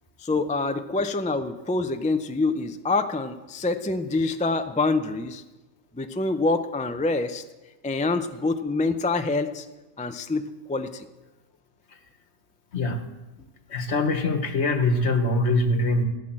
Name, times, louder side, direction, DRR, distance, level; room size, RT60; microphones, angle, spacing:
voice 1, 0.2-5.4 5.9-7.4 7.8-9.7 10.0-10.4 10.7-11.1, left 3 dB, 10° left, 9 dB, 0.3 m, -26 dB
voice 2, 13.7-16.0, left 2 dB, 60° left, 8 dB, 1.6 m, -23 dB
15.5 x 9.1 x 7.5 m, 1.1 s
omnidirectional pair, 1.3 m